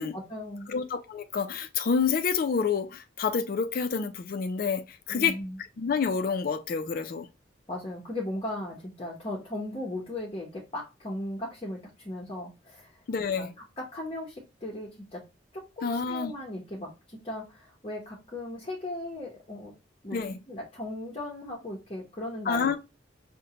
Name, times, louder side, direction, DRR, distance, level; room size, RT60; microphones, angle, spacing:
voice 1, 0.0-0.8 5.1-5.6 7.7-13.0 13.4-13.5 13.8-15.2 15.5-19.7 20.0-22.8, left 1 dB, 30° left, 0.8 m, -37 dB
voice 2, 0.7-5.4 5.8-7.3 13.1-13.5 15.8-16.3 20.1-20.4 22.5-22.8, left 6 dB, 50° left, 0.3 m, -28 dB
5.1 x 2.1 x 2.8 m
head